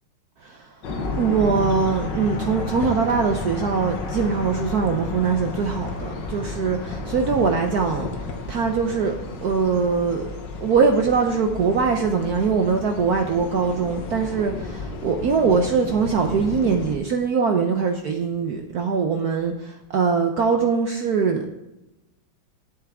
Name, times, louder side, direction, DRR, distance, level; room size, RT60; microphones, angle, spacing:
voice 1, 0.4-0.7 1.2-8.1 8.5-9.1 9.4-10.3 10.6-21.5, right 5 dB, 65° right, 4 dB, 1.0 m, -22 dB
sound 1, 0.8-17.0, left 3 dB, 60° left, 1.6 m, -32 dB
11.0 x 8.5 x 3.5 m, 0.95 s
omnidirectional pair, 2.4 m